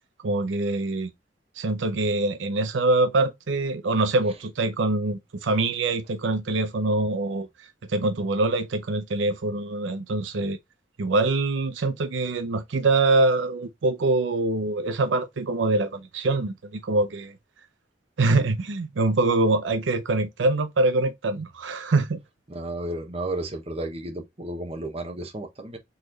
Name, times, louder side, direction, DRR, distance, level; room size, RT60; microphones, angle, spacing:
voice 1, 0.2-1.1 1.6-7.5 7.9-10.6 11.0-17.3 18.2-22.2, right 2 dB, 90° right, 0.6 m, -24 dB
voice 2, 22.5-25.8, right 1 dB, 35° right, 1.0 m, -33 dB
4.0 x 3.2 x 3.8 m
head